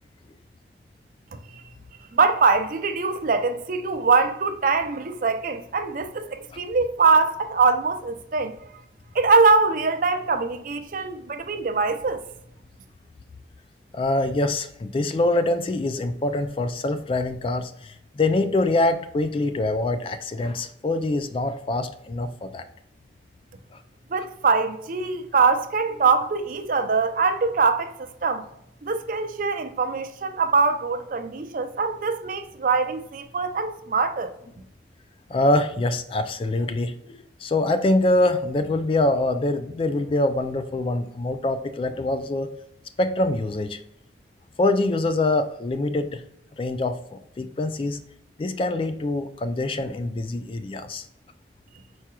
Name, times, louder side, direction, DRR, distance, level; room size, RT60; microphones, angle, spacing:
voice 1, 2.1-8.6 9.1-12.2 24.1-27.9 28.2-28.4 28.8-34.3, right 4 dB, 50° right, 0.5 m, -22 dB
voice 2, 13.9-22.6 23.7-23.8 35.3-42.5 43.0-43.8 44.6-46.2 46.6-48.0 48.4-51.1, left 2 dB, 30° left, 0.3 m, -24 dB
4.7 x 4.3 x 2.3 m
head